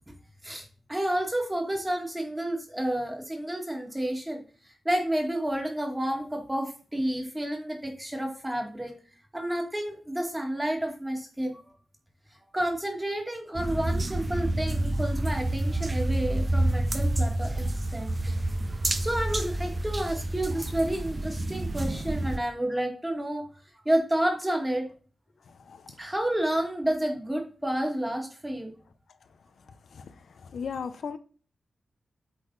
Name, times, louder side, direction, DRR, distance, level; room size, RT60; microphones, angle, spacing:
voice 1, 0.4-4.4 4.9-8.9 9.3-11.6 12.5-18.3 19.0-23.5 23.9-24.9 26.0-28.7, right 1 dB, 10° right, 2 dB, 1.9 m, -30 dB
sound 1, 13.5-22.4, right 1 dB, 30° right, 0.7 m, -28 dB
voice 2, 30.4-31.2, left 6 dB, 75° left, 9 dB, 0.7 m, -36 dB
8.1 x 4.0 x 3.9 m, 0.39 s
wide cardioid pair, 110°, 0 cm